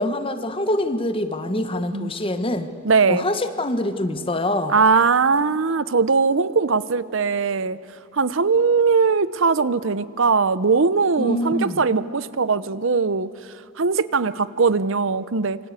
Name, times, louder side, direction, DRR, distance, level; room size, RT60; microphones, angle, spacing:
voice 1, 0.0-2.7 3.1-4.7 11.2-11.8, left 1 dB, 25° left, 9 dB, 1.2 m, -24 dB
voice 2, 2.8-3.3 4.7-7.8 8.1-13.3 13.8-15.6, right 4 dB, 70° right, 16 dB, 0.7 m, -20 dB
27.0 x 24.5 x 8.3 m, 2.4 s
head